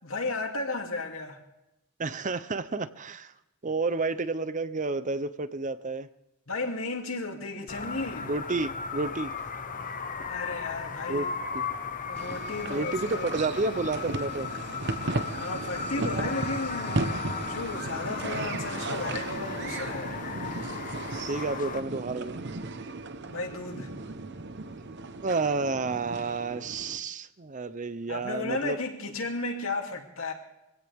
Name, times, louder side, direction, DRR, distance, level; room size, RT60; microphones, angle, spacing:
voice 1, 0.0-1.4 6.5-8.3 10.3-11.3 12.0-13.3 15.3-20.2 23.3-23.9 28.1-30.3, left 3 dB, 65° left, 2 dB, 2.8 m, -34 dB
voice 2, 2.0-3.3 3.6-6.1 8.2-9.3 11.1-11.3 11.5-11.6 12.7-14.5 21.3-22.4 24.7-24.9 25.2-28.8, right 3 dB, 35° right, 13 dB, 0.7 m, -30 dB
sound 1, 7.7-21.8, left 5 dB, 35° left, 0.9 m, -36 dB
sound 2, 12.1-27.0, right 2 dB, 50° right, 1.0 m, -36 dB
24.5 x 16.5 x 3.6 m, 0.90 s
head